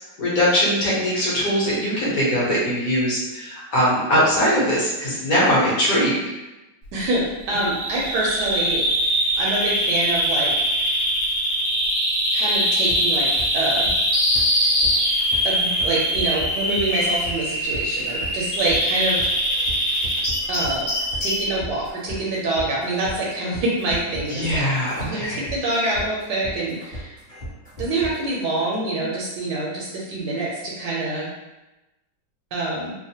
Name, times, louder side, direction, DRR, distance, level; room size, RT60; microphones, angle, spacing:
voice 1, 0.2-6.2 24.3-25.4, equal, 60° left, -8 dB, 1.3 m, -21 dB
voice 2, 6.9-8.8 9.4-10.9 12.3-13.3 13.5-13.9 15.4-19.3 20.5-20.9 21.2-24.7 25.0-27.1 27.8-31.3 32.5-32.9, right 2 dB, 75° right, -4 dB, 1.1 m, -26 dB
Bird vocalization bird call bird song, 7.5-21.5, equal, 85° left, 1.5 m, -22 dB
sound 1, 12.9-28.3, equal, 30° left, 0.9 m, -36 dB
3.2 x 2.1 x 2.7 m, 1.0 s
omnidirectional pair, 1.9 m